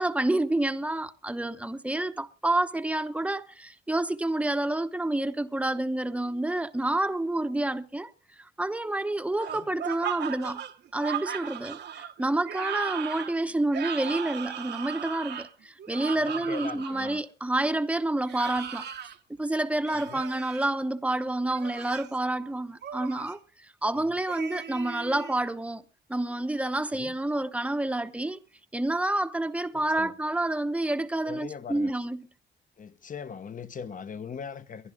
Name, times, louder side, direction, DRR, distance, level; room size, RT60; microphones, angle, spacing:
voice 1, 0.0-8.1 8.4-10.6 10.9-18.9 19.4-25.8 26.1-28.4 28.7-32.2, right 1 dB, 5° right, 0.9 m, -29 dB
sound 1, 9.4-17.2 18.2-19.2 19.8-20.6 21.4-22.2 22.8-23.4 24.3-25.4, right 9 dB, 60° right, 1.0 m, -37 dB
voice 2, 16.1-17.2 19.9-20.3 24.0-24.2 26.9-27.2 29.7-30.2 31.2-32.0 32.8-34.9, left 6 dB, 40° left, 1.1 m, -41 dB
22.5 x 11.0 x 3.7 m
cardioid pair, 90°, 20 cm